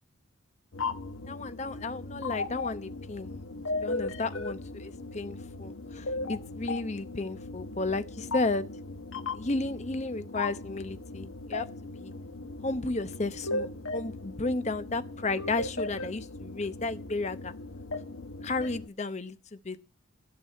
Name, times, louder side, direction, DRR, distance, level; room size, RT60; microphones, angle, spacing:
sound 1, 0.7-18.9, left 3 dB, 80° left, 1.2 m, -37 dB
voice 1, 1.3-3.3 3.7-8.7 9.3-11.7 12.0-12.1 12.6-17.5 18.4-19.8, left 3 dB, 35° left, 12 dB, 0.8 m, -33 dB
14.0 x 6.2 x 8.5 m, 0.32 s
head